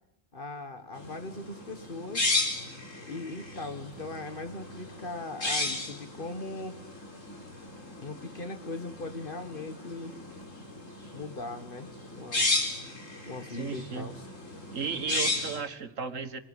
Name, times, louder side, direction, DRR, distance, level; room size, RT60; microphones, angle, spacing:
voice 1, 0.3-2.4 3.0-6.8 8.0-10.1 11.1-12.5 13.3-14.3, left 2 dB, 45° left, 7 dB, 1.8 m, -39 dB
sound 1, 1.0-15.6, left 2 dB, 80° left, 4.3 m, -34 dB
voice 2, 13.5-14.1 14.7-16.4, right 6 dB, 75° right, 9 dB, 1.9 m, -35 dB
28.0 x 18.5 x 9.7 m, 0.84 s
omnidirectional pair, 1.3 m